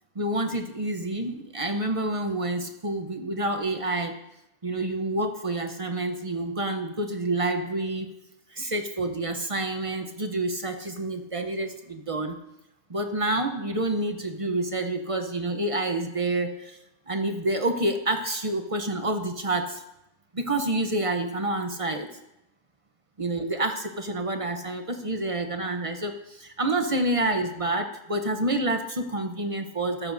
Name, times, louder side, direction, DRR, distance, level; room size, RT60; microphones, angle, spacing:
voice 1, 0.1-4.2 4.6-8.1 8.5-12.4 12.9-16.8 17.1-19.8 20.3-22.1 23.2-30.1, right 2 dB, 40° right, 6 dB, 0.5 m, -28 dB
13.5 x 12.5 x 2.6 m, 0.87 s
omnidirectional pair, 1.7 m